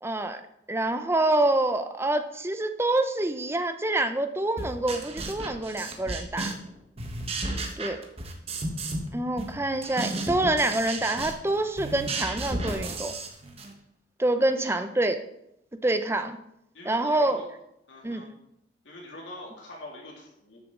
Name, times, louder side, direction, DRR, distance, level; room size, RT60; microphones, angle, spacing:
voice 1, 0.0-0.4 0.7-6.5 7.8-8.0 9.1-13.1 14.2-15.2 15.8-16.4 16.9-17.4 18.0-18.2, right 2 dB, 15° right, 8 dB, 0.6 m, -26 dB
sound 1, 4.6-6.7 7.0-9.1 9.4-13.7, right 2 dB, 30° right, 1.3 m, -33 dB
voice 2, 14.4-14.8 16.7-17.5 17.9-18.3 18.8-20.6, left 1 dB, 75° left, -2 dB, 2.8 m, -44 dB
13.0 x 7.2 x 3.8 m, 0.80 s
head